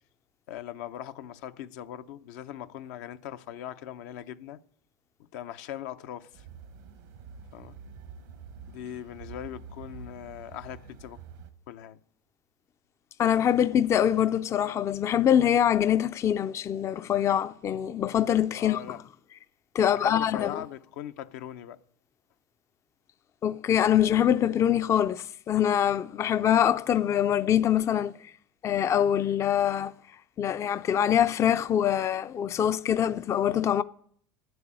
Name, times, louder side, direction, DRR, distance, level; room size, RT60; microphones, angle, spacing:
voice 1, 0.5-4.6 5.2-6.4 7.5-7.8 8.7-11.2 11.7-12.0 18.5-19.0 19.8-21.8, left 11 dB, 75° left, 0.6 m, -40 dB
sound 1, 6.3-11.5, right 6 dB, 80° right, 1.1 m, -47 dB
voice 2, 13.2-19.0 19.7-20.6 23.4-28.3 28.6-29.9 30.4-33.8, left 10 dB, 30° left, 0.4 m, -24 dB
9.0 x 7.8 x 8.7 m
supercardioid pair, 100°, 9 cm